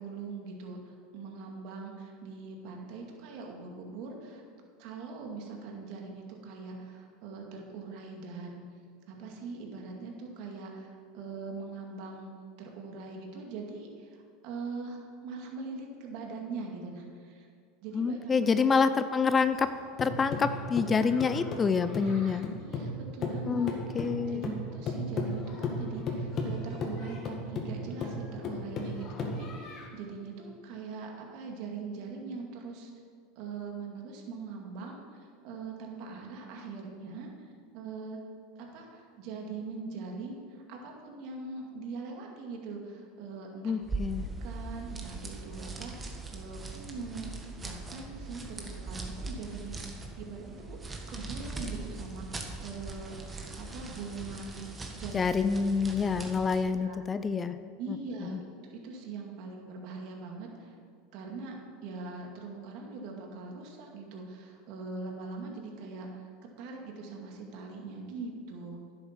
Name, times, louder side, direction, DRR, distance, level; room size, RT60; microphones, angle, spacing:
voice 1, 0.0-4.4 4.8-8.6 9.1-12.3 12.6-17.5 17.8-18.6 22.0-32.9 33.4-38.2 38.6-43.7 44.4-47.3 47.6-50.8 51.1-53.2 53.6-54.7 54.9-55.2 56.0-56.1 56.8-57.0 57.8-60.8 61.1-61.6 61.8-66.3 66.6-68.8, right 4 dB, 60° right, 1 dB, 2.2 m, -42 dB
voice 2, 17.9-19.7 20.0-22.4 23.5-24.5 43.6-44.3 55.1-57.6 58.3-58.4, left 5 dB, 25° left, 11 dB, 0.5 m, -27 dB
sound 1, 19.5-22.9 23.2-29.9, left 2 dB, 40° left, 1.9 m, -35 dB
sound 2, 43.8-56.7, right 3 dB, 20° right, 1.6 m, -41 dB
10.5 x 7.9 x 5.8 m, 2.1 s
hypercardioid pair, 100°, 0 cm